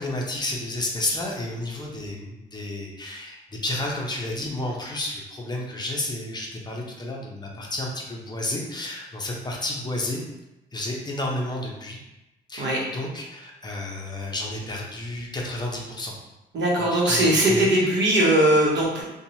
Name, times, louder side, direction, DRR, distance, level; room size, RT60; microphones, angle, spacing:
voice 1, 0.0-10.2 10.7-12.0 12.5-16.1 16.8-17.7, left 1 dB, 20° left, -2 dB, 0.7 m, -31 dB
voice 2, 16.5-19.0, right 1 dB, 65° right, -3 dB, 1.0 m, -20 dB
2.8 x 2.3 x 2.7 m, 0.98 s
cardioid pair, 90°, 20 cm